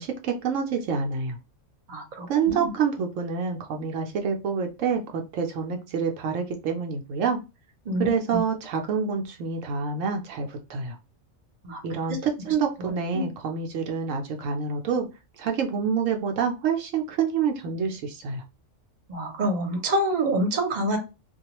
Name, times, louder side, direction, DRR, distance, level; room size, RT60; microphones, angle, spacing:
voice 1, 0.0-1.4 2.3-7.4 8.0-11.0 11.8-15.1 15.4-18.4, right 6 dB, 75° right, 3 dB, 0.9 m, -27 dB
voice 2, 1.9-2.7 7.8-8.4 11.6-11.8 12.1-12.2 12.8-13.3 19.1-21.0, right 1 dB, 40° right, 3 dB, 0.8 m, -27 dB
2.3 x 2.2 x 2.8 m, 0.27 s
omnidirectional pair, 1.3 m